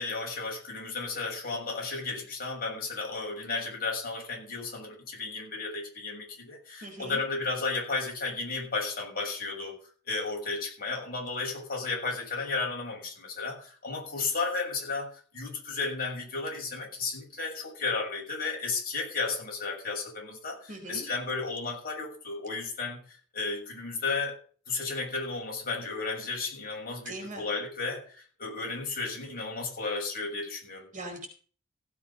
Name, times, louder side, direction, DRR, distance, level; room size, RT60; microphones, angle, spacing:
voice 1, 0.0-9.8 10.1-24.4 24.7-30.9, left 3 dB, 45° left, 0 dB, 6.9 m, -33 dB
voice 2, 6.8-7.2 20.7-21.0 27.1-27.5 30.9-31.3, right 1 dB, 40° right, 3 dB, 4.6 m, -40 dB
15.5 x 8.5 x 5.5 m, 0.42 s
head